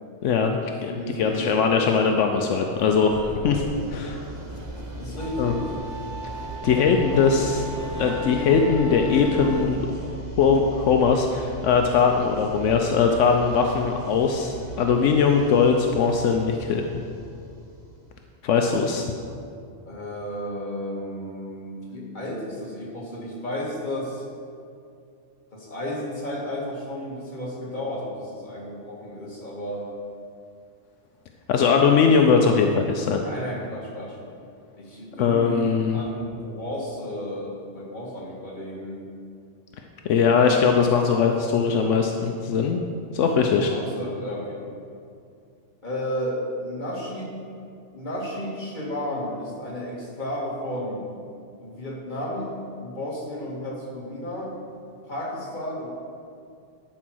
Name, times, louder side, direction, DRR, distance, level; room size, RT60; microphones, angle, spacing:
voice 1, 0.2-0.5 0.8-0.9 1.2-3.1 3.4-3.6 3.9-4.3 5.4-5.5 6.6-7.7 8.0-16.9 18.4-19.0 31.5-33.2 35.1-36.0 40.0-42.8 43.1-43.7, left 5 dB, 80° left, 3 dB, 1.0 m, -20 dB
voice 2, 0.9-1.9 3.2-3.4 5.0-5.8 19.9-24.3 25.5-29.9 33.2-34.2 34.8-35.6 35.9-39.0 43.7-44.6 45.8-47.3 47.9-51.0 51.6-52.5 52.8-54.5 55.0-55.9, equal, 40° left, -4 dB, 1.9 m, -33 dB
sound 1, 1.1-9.7, right 1 dB, 20° right, 0.7 m, -36 dB
sound 2, 3.5-18.3, right 1 dB, 60° right, 1.9 m, -40 dB
11.5 x 4.5 x 6.2 m, 2.4 s
omnidirectional pair, 1.2 m